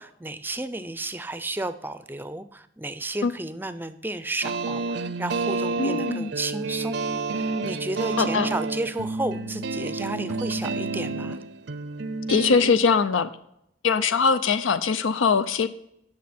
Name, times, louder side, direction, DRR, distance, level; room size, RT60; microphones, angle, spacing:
voice 1, 0.0-7.0 7.3-11.4, right 2 dB, 10° right, 13 dB, 0.4 m, -32 dB
sound 1, 4.4-12.8, right 3 dB, 65° right, 0.5 m, -29 dB
voice 2, 5.8-6.3 8.2-8.5 12.3-13.3 13.8-15.7, left 5 dB, 90° left, 12 dB, 0.5 m, -22 dB
16.5 x 6.2 x 4.3 m, 0.79 s
head